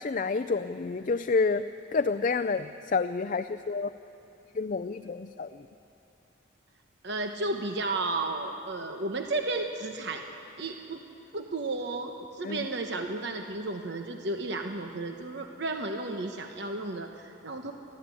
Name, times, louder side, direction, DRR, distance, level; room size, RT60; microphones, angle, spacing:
voice 1, 0.0-1.6 1.9-3.9 4.5-5.7 12.4-12.7, left 4 dB, 40° left, 11 dB, 0.4 m, -29 dB
voice 2, 7.0-10.2 10.6-11.0 11.3-17.7, right 2 dB, 60° right, 4 dB, 1.0 m, -33 dB
30.0 x 12.5 x 8.4 m, 2.8 s
head